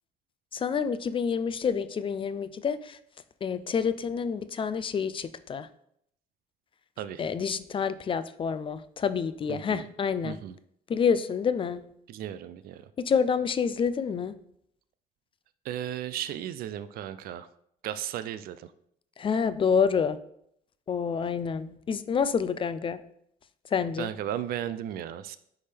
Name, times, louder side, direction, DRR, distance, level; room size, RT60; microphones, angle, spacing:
voice 1, 0.5-3.0 3.4-5.7 7.2-10.4 10.9-11.8 13.0-14.4 19.2-20.2 20.9-23.1 23.7-24.1, left 6 dB, 30° left, 13 dB, 0.4 m, -28 dB
voice 2, 9.5-9.8 10.2-10.6 12.1-12.9 15.6-17.5 17.8-18.7 24.0-25.4, right 11 dB, 60° right, 13 dB, 0.4 m, -35 dB
9.7 x 3.5 x 3.4 m, 0.71 s
cardioid pair, 110°, 17 cm